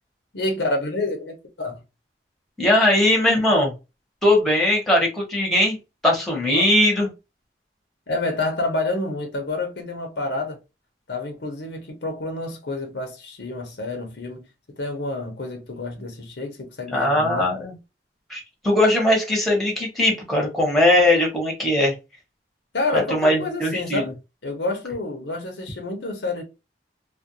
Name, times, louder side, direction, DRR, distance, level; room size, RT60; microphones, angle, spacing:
voice 1, 0.3-1.8 6.5-6.7 8.1-10.6 11.1-14.5 14.8-17.5 22.7-24.1 24.4-26.4, left 2 dB, 70° left, 0.8 m, -28 dB
voice 2, 2.6-3.7 4.2-5.8 6.0-7.1 16.9-17.7 18.3-21.9 22.9-24.0, left 1 dB, ahead, 0.9 m, -19 dB
2.4 x 2.1 x 2.7 m
head